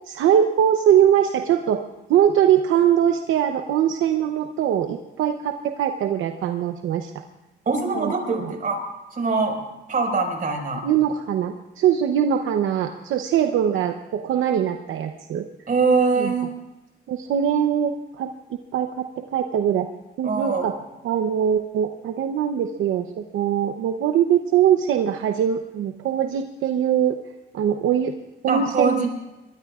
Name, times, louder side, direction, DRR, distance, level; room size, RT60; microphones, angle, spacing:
voice 1, 0.1-1.8 2.1-7.2 8.0-8.1 8.4-8.5 10.8-15.5 16.2-16.3 17.1-18.3 18.7-19.9 20.2-20.7 21.0-27.2 27.5-28.1 28.4-29.0, right 9 dB, 80° right, 6 dB, 0.8 m, -22 dB
voice 2, 7.7-8.8 9.1-9.6 9.9-10.8 15.7-16.5 20.2-20.7 28.5-29.1, right 4 dB, 45° right, 1 dB, 5.3 m, -22 dB
23.0 x 22.0 x 2.5 m, 1.0 s
cardioid pair, 90°, 20 cm